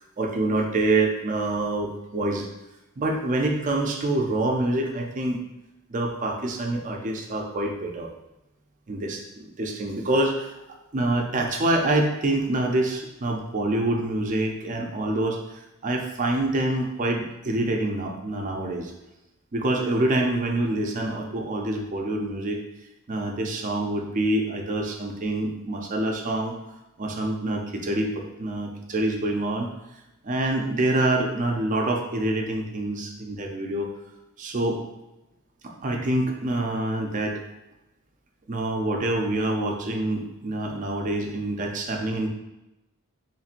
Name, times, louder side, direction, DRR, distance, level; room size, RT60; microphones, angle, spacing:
voice 1, 0.2-2.5 3.0-5.4 5.9-8.1 8.9-10.5 10.9-18.9 19.5-22.6 23.1-26.6 27.0-28.1 28.4-29.7 30.2-33.9 34.4-34.8 35.6-37.4 38.5-42.3, right 2 dB, 35° right, 1 dB, 0.5 m, -26 dB
4.2 x 3.1 x 2.5 m, 0.94 s
head